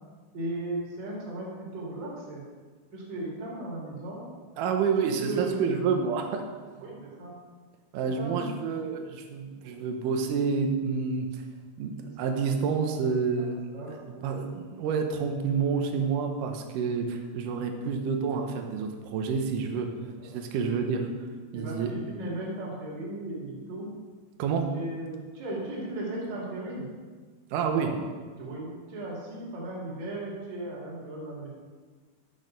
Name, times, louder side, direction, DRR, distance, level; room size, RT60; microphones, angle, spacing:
voice 1, 0.3-2.5 2.9-4.3 5.0-5.7 6.8-7.3 8.0-8.5 8.8-8.9 9.5-9.8 12.2-12.3 13.4-14.3 20.0-20.3 20.8-20.9 21.5-23.9 24.7-26.9 27.7-27.9 28.4-31.5, right 2 dB, 45° right, -6 dB, 3.5 m, -36 dB
voice 2, 4.6-6.4 7.9-11.4 11.8-13.5 13.9-19.9 20.2-21.1 21.5-21.9 24.4-24.7 27.5-27.9, right 5 dB, 85° right, 4 dB, 1.9 m, -28 dB
10.5 x 6.5 x 5.2 m, 1.5 s
omnidirectional pair, 4.8 m